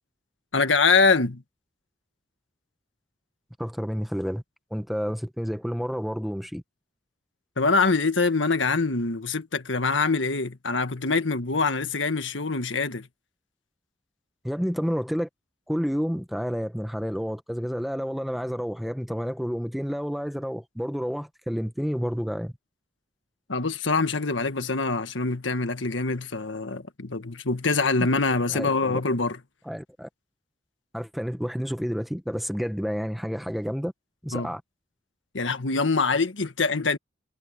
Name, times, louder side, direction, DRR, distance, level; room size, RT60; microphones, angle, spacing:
voice 1, 0.5-1.4 7.6-13.1 23.5-29.4 34.3-34.5 35.3-37.0, left 4 dB, 85° left, 1.6 m, -24 dB
voice 2, 3.6-4.4 4.7-6.6 14.4-15.3 15.7-22.5 28.5-29.0 29.7-30.1 30.9-33.9 34.2-34.6, equal, ahead, 1.0 m, -30 dB
head